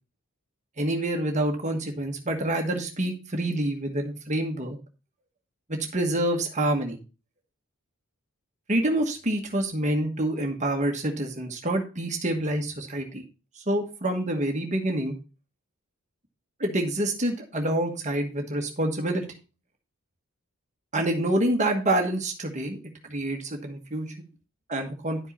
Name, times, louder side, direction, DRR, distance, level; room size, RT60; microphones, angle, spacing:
voice 1, 0.8-4.8 5.9-7.0 8.7-13.2 13.7-15.1 16.6-19.2 20.9-22.8 23.1-24.1 24.7-25.2, right 1 dB, 30° right, 3 dB, 1.3 m, -27 dB
11.0 x 5.4 x 4.0 m, 0.32 s
head